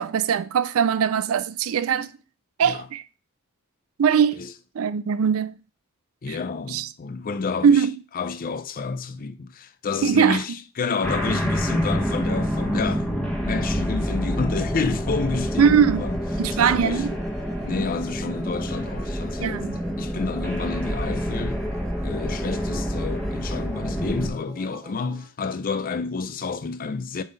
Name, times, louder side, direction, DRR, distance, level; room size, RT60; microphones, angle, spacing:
voice 1, 0.0-2.1 2.6-3.0 4.0-4.4 4.7-5.6 6.3-6.4 6.7-6.9 7.6-7.9 10.0-10.6 15.6-16.1 16.4-17.1 19.4-19.8, right 7 dB, 75° right, 0.4 m, -21 dB
voice 2, 6.2-7.9 8.1-13.1 13.4-16.2 16.5-17.0 17.6-19.6 20.0-27.2, left 4 dB, 45° left, 0.5 m, -30 dB
sound 1, 11.0-24.3, equal, 5° left, 1.2 m, -27 dB
sound 2, 15.6-25.3, right 1 dB, 30° right, 1.5 m, -46 dB
7.2 x 3.7 x 3.9 m
head